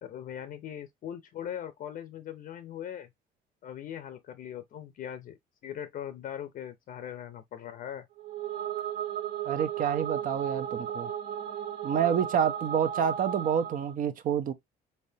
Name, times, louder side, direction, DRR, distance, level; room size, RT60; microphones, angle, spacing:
voice 1, 0.0-3.1 3.6-8.1, left 10 dB, 55° left, 0.6 m, -40 dB
sound 1, 8.2-13.9, right 9 dB, 70° right, 1.2 m, -35 dB
voice 2, 9.5-11.1 11.8-14.5, right 8 dB, 55° right, 0.8 m, -28 dB
4.2 x 3.4 x 2.7 m
cardioid pair, 110°, 17 cm